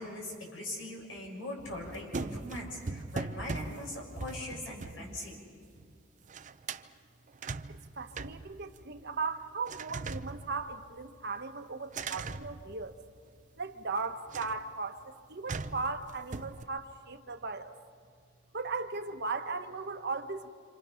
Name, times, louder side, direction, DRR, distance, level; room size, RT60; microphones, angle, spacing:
voice 1, 0.0-5.4, left 1 dB, 80° left, 0 dB, 6.7 m, -41 dB
sound 1, 1.6-6.0 6.2-6.9 7.3-9.2 9.7-11.2 11.9-13.4 14.3-14.7 15.5-16.6, right 4 dB, 40° right, 0.6 m, -41 dB
voice 2, 8.0-12.9 13.6-17.7 18.5-20.5, right 4 dB, 60° right, 7 dB, 1.3 m, -37 dB
28.0 x 27.0 x 5.8 m, 2.1 s
head